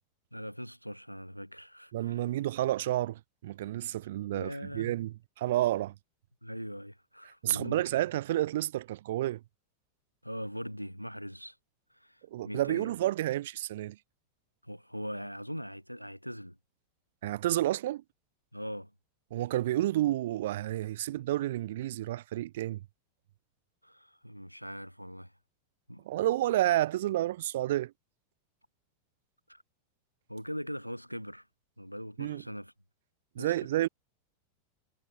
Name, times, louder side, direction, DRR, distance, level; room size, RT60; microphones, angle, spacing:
voice 1, 0.3-2.3 4.3-4.9 6.4-7.8 10.2-11.6 11.9-12.9 14.6-16.6 18.5-18.9 23.8-25.3 25.9-26.0 29.5-29.6 30.3-31.5 31.8-32.7 33.4-33.7, equal, 90° left, 0.7 m, -41 dB
voice 2, 1.9-5.9 7.4-9.4 12.3-14.0 17.2-18.0 19.3-22.8 26.0-27.9 32.2-32.4 33.3-33.9, right 14 dB, 55° right, 1.5 m, -30 dB
figure-of-eight pair, 90°, 0 cm